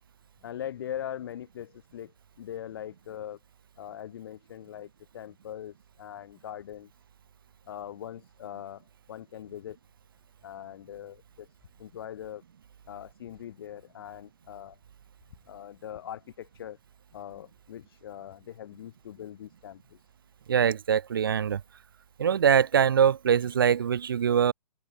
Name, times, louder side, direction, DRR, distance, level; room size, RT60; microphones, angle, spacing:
voice 1, 0.4-3.4 3.8-6.9 7.7-9.8 10.4-11.5 11.8-12.4 12.9-14.8 15.5-16.8 17.1-20.0, left 10 dB, 35° left, 1.1 m, -41 dB
voice 2, 20.5-21.6 22.2-24.5, right 8 dB, 35° right, 0.4 m, -23 dB
open air
figure-of-eight pair, 135°, 21 cm